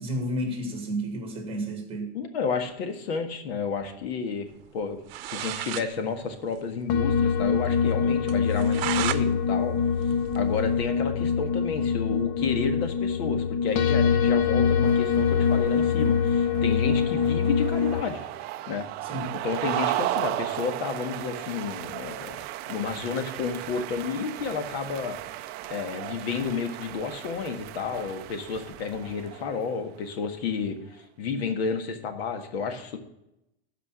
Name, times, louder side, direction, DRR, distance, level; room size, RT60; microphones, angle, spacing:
voice 1, 0.0-2.1 19.0-19.4, right 1 dB, 20° right, 2.0 m, -31 dB
voice 2, 2.1-5.0 5.2-9.8 10.3-18.3 18.7-18.9 19.3-22.4 22.7-25.2 25.7-30.7 31.2-33.0, left 5 dB, 90° left, 1.7 m, -31 dB
sound 1, 4.8-4.9 5.1-5.9 6.2-6.3 6.6-6.7 7.1-7.2 7.6-7.7 8.3-9.2 9.6-11.0, right 14 dB, 70° right, 0.7 m, -33 dB
sound 2, 6.9-18.0, left 6 dB, 40° left, 0.6 m, -24 dB
sound 3, 14.2-29.9, right 15 dB, 35° right, 0.4 m, -36 dB
13.0 x 5.0 x 6.2 m
supercardioid pair, 155°, 30 cm